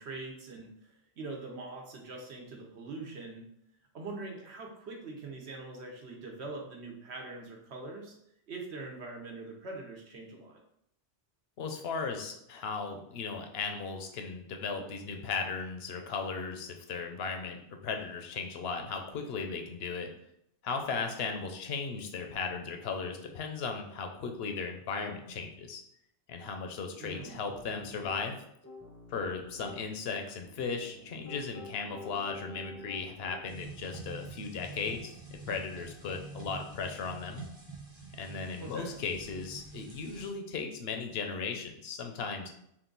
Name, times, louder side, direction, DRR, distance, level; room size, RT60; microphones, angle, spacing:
voice 1, 0.0-3.5 3.9-8.1 8.5-10.6 27.0-27.4 38.6-39.0, right 3 dB, 70° right, 0 dB, 1.1 m, -43 dB
voice 2, 11.6-20.1 20.6-25.8 26.3-28.4 29.1-35.2 35.5-37.4 38.2-42.5, left 5 dB, 65° left, 5 dB, 0.8 m, -36 dB
Piano, 27.2-28.2 28.6-29.8 30.4-33.6, left 2 dB, 20° left, 0.6 m, -48 dB
sound 1, 33.5-40.3, right 4 dB, 25° right, 0.8 m, -47 dB
3.8 x 2.4 x 3.8 m, 0.75 s
omnidirectional pair, 1.2 m